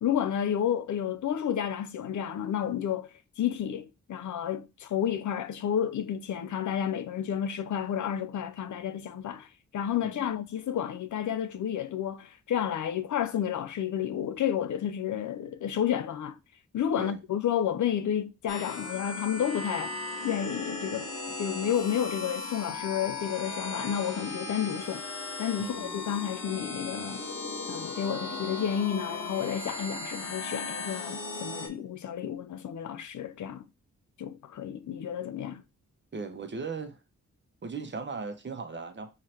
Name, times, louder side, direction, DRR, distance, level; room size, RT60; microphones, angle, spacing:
voice 1, 0.0-3.1 3.4-9.5 9.7-16.4 16.7-20.0 20.2-21.1 21.4-25.1 25.4-27.3 27.7-33.6 34.2-35.6, left 9 dB, 70° left, 0.6 m, -31 dB
voice 2, 10.0-10.4 17.0-17.2 25.6-26.0 36.1-37.0 37.6-39.1, right 4 dB, 35° right, 1.0 m, -38 dB
sound 1, 18.5-31.7, left 3 dB, 55° left, 1.3 m, -37 dB
5.6 x 3.2 x 2.9 m
cardioid pair, 60°, 30 cm